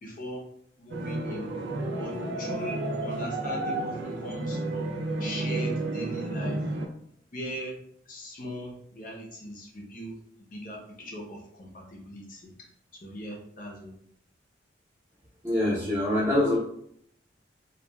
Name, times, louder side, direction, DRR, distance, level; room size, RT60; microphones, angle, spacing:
voice 1, 0.0-0.4 0.8-1.5 2.0-4.9 5.2-6.7 7.3-7.7 8.1-10.1 10.5-12.5 13.0-13.9, equal, 45° left, -1 dB, 0.6 m, -39 dB
sound 1, 0.9-6.9, right 2 dB, 65° right, 0.4 m, -31 dB
voice 2, 15.4-16.6, left 1 dB, 15° right, -8 dB, 0.8 m, -24 dB
2.9 x 2.3 x 2.2 m, 0.70 s
head